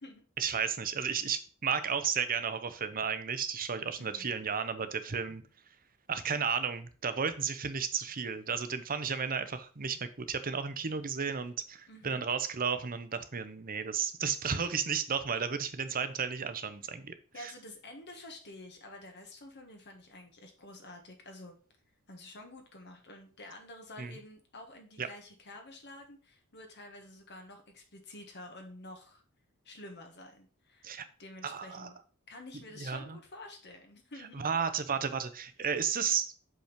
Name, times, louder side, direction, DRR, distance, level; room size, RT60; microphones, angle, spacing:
voice 1, 0.4-5.4 6.1-17.1 17.4-17.5 24.0-24.1 25.0-25.1 30.8-31.1 31.4-31.9 32.8-33.2 34.3-36.3, right 6 dB, 40° right, 12 dB, 0.8 m, -33 dB
voice 2, 4.0-4.4 11.9-12.3 17.3-21.6 22.1-29.2 29.6-31.9 32.3-34.4, left 1 dB, 50° left, 3 dB, 1.5 m, -49 dB
6.2 x 5.3 x 5.1 m, 0.39 s
head